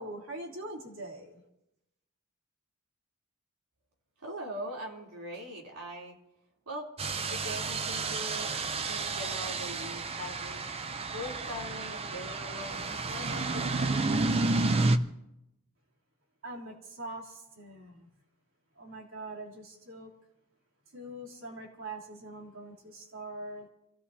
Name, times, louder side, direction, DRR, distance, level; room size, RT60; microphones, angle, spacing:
voice 1, 0.0-1.4 16.4-18.1 18.8-20.1 20.9-23.7, right 1 dB, 65° right, -2 dB, 3.1 m, -43 dB
voice 2, 4.2-6.2 6.6-6.9 7.3-14.3, equal, 90° right, -1 dB, 3.4 m, -42 dB
sound 1, 7.0-15.0, right 3 dB, 25° right, 0.5 m, -31 dB
27.5 x 17.0 x 2.8 m, 0.89 s
head